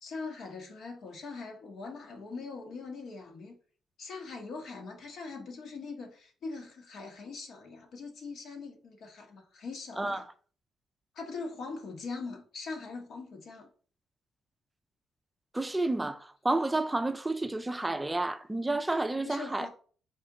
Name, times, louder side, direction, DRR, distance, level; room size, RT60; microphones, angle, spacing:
voice 1, 0.0-3.6 4.0-10.2 11.1-13.7 19.2-19.7, left 4 dB, 65° left, 1.1 m, -41 dB
voice 2, 15.5-19.7, right 2 dB, 10° right, 0.4 m, -30 dB
4.2 x 2.8 x 3.7 m
cardioid pair, 90°, 0 cm